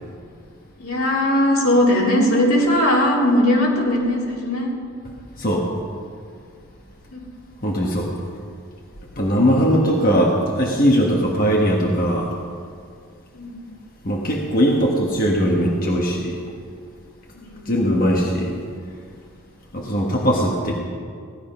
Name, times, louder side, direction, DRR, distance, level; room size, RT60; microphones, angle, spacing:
voice 1, 0.8-4.7 7.1-7.2 13.3-13.7 17.3-17.7 19.7-20.1, left 1 dB, 80° left, -4 dB, 3.4 m, -19 dB
voice 2, 7.6-8.1 9.2-12.3 14.0-16.4 17.7-18.5 19.7-20.7, equal, 40° left, -2 dB, 1.5 m, -19 dB
17.0 x 11.0 x 5.5 m, 2.2 s
head